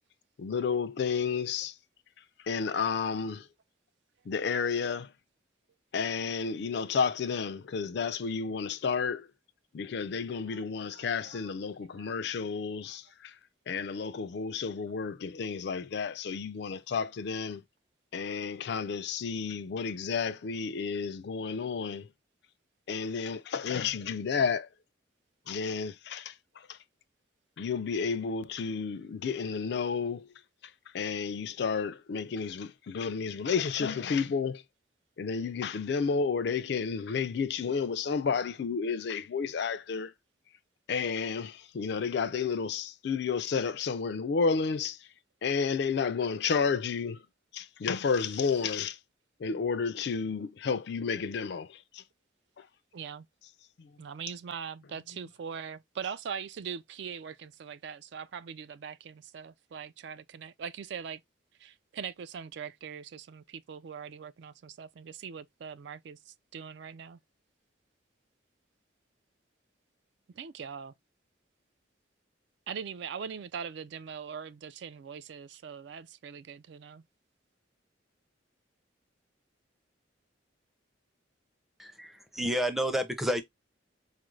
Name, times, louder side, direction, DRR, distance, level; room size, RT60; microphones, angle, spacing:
voice 1, 0.4-1.7 2.4-3.5 4.3-5.1 5.9-9.3 9.7-13.4 13.7-17.6 18.1-22.1 22.9-24.7 25.5-26.8 27.6-30.3 30.9-34.6 35.2-40.1 40.9-45.1 45.4-47.2 47.5-49.0 49.4-52.0 52.6-52.7 53.8-53.9, left 5 dB, 55° left, 0.4 m, -31 dB
voice 2, 10.5-11.5 12.0-12.2 12.8-13.0 52.9-53.3 54.0-61.2 61.6-67.2 70.3-70.9 72.7-77.0, right 7 dB, 60° right, 0.3 m, -42 dB
voice 3, 81.8-83.4, equal, ahead, 0.5 m, -30 dB
4.3 x 2.5 x 3.1 m
head